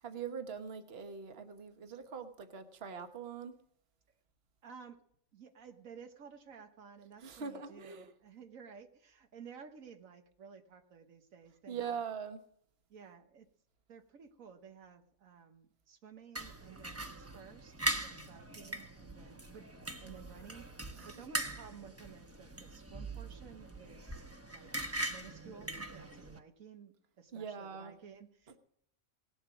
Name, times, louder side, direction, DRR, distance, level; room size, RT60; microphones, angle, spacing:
voice 1, 0.0-3.6 7.2-8.1 11.7-12.4 20.9-21.4 27.3-28.0, right 6 dB, 50° right, 7 dB, 1.3 m, -42 dB
voice 2, 4.6-5.0 5.3-12.0 12.9-13.5 13.9-19.7 20.0-20.7 21.0-24.3 24.5-28.6, right 6 dB, 85° right, 6 dB, 1.5 m, -54 dB
sound 1, 16.4-26.4, right 1 dB, 15° right, 0.7 m, -41 dB
18.5 x 7.9 x 6.1 m, 0.69 s
omnidirectional pair, 1.4 m